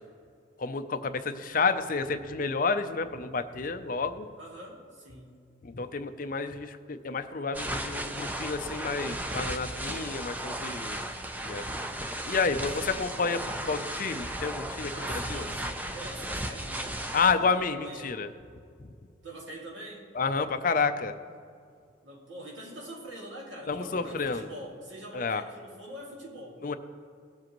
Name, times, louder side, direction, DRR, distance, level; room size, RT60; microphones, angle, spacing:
voice 1, 0.6-4.3 5.6-11.0 11.4-11.7 12.3-15.5 17.1-18.3 20.2-21.1 23.7-24.5 25.1-25.4 26.6-26.7, left 4 dB, 45° left, 10 dB, 0.5 m, -30 dB
voice 2, 4.4-5.4 12.8-13.1 14.9-18.3 19.2-20.1 22.0-26.7, right 1 dB, 75° right, -2 dB, 2.4 m, -44 dB
sound 1, 7.5-17.3, right 1 dB, 10° right, 0.4 m, -35 dB
18.0 x 7.5 x 3.0 m, 2.3 s
head